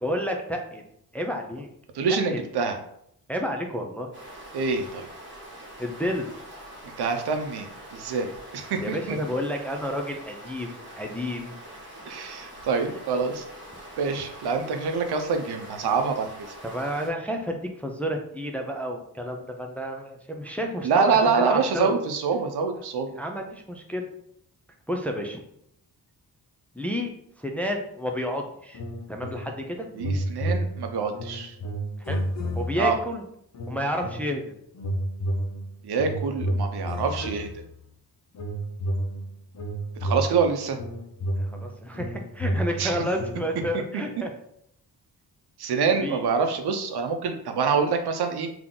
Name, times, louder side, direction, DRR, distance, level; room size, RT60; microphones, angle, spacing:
voice 1, 0.0-0.8 1.1-1.7 2.3-2.5 3.3-4.1 5.8-6.3 8.8-11.5 16.6-21.9 23.1-24.1 24.9-25.4 26.7-28.8 29.1-29.9 32.0-32.2 32.6-33.2 33.7-34.5 41.4-44.3 46.0-46.2, equal, 5° left, 2 dB, 0.4 m, -30 dB
voice 2, 1.9-2.8 4.5-5.1 6.8-8.3 8.5-9.2 12.1-13.4 14.0-16.5 20.8-23.1 30.0-31.6 32.8-33.0 35.8-37.6 40.0-40.8 42.8-43.0 45.6-48.5, right 5 dB, 85° right, 5 dB, 0.7 m, -26 dB
sound 1, 4.1-17.1, right 1 dB, 30° right, 1.6 m, -44 dB
sound 2, 28.7-29.7 29.9-33.0 33.5-34.4 34.7-37.8 38.3-43.7, equal, 45° left, 0.6 m, -31 dB
3.7 x 2.9 x 3.7 m, 0.72 s
wide cardioid pair, 140°, 38 cm